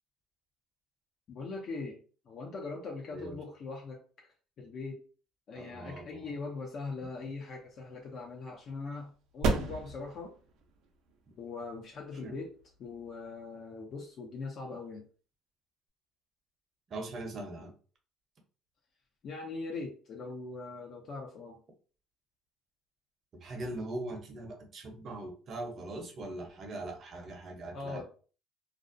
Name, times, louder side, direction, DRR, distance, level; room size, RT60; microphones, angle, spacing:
voice 1, 1.3-2.0 2.3-4.0 4.6-5.0 5.5-10.3 11.4-12.5 12.8-15.1 19.2-21.6 27.7-28.0, left 3 dB, 50° left, 0 dB, 0.5 m, -41 dB
voice 2, 5.6-6.3 12.2-12.3 16.9-17.7 23.4-28.0, right 2 dB, 45° right, 3 dB, 0.7 m, -41 dB
sound 1, 7.1-14.1, right 3 dB, 75° right, 0.5 m, -38 dB
2.4 x 2.1 x 2.5 m, 0.38 s
cardioid pair, 120°, 0 cm